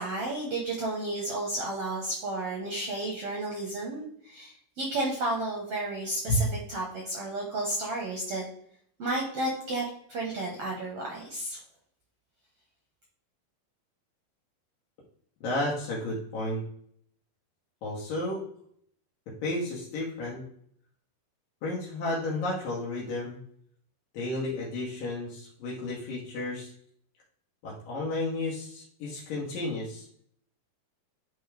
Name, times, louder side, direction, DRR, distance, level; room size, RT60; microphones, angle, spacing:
voice 1, 0.0-8.4 9.0-11.6, right 2 dB, 60° right, -2 dB, 1.7 m, -32 dB
voice 2, 15.4-16.6 17.8-18.4 19.4-20.4 21.6-23.4 24.1-26.7 27.6-30.1, left 1 dB, 75° left, -5 dB, 3.0 m, -32 dB
10.0 x 3.5 x 3.3 m, 0.64 s
omnidirectional pair, 4.0 m